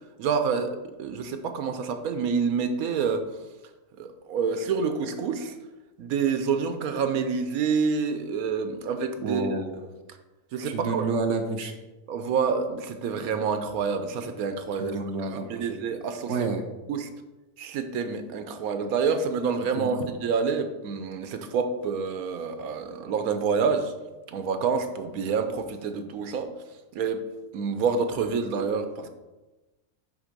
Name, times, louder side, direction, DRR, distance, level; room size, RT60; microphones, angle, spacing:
voice 1, 0.2-3.2 4.0-5.5 6.0-9.4 10.5-11.1 12.1-15.0 15.3-16.5 16.9-17.1 17.6-23.9 24.3-26.5 26.9-27.3 27.5-29.1, right 5 dB, 85° right, 8 dB, 1.2 m, -27 dB
voice 2, 9.2-9.8 10.6-11.7 14.8-15.7 16.3-16.7 19.8-20.0, right 4 dB, 60° right, 4 dB, 1.1 m, -29 dB
7.9 x 3.6 x 5.2 m, 1.1 s
omnidirectional pair, 1.5 m